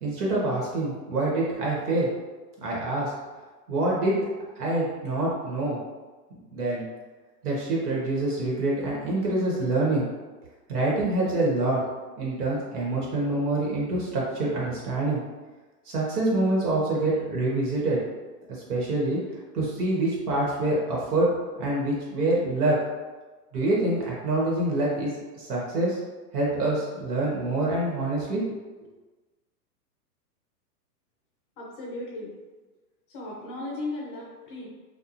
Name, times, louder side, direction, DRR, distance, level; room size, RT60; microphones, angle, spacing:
voice 1, 0.0-2.1 2.6-3.1 3.7-4.3 4.6-5.8 6.5-6.8 7.4-10.1 10.7-11.8 12.2-15.2 15.9-18.0 18.5-19.2 19.5-21.3 21.6-22.8 23.5-26.0 26.3-28.4, right 2 dB, 65° right, -4 dB, 1.2 m, -26 dB
voice 2, 31.6-32.3 33.1-34.7, left 2 dB, 35° left, -4 dB, 0.5 m, -36 dB
2.9 x 2.3 x 2.5 m, 1.3 s
hypercardioid pair, 145°, 48 cm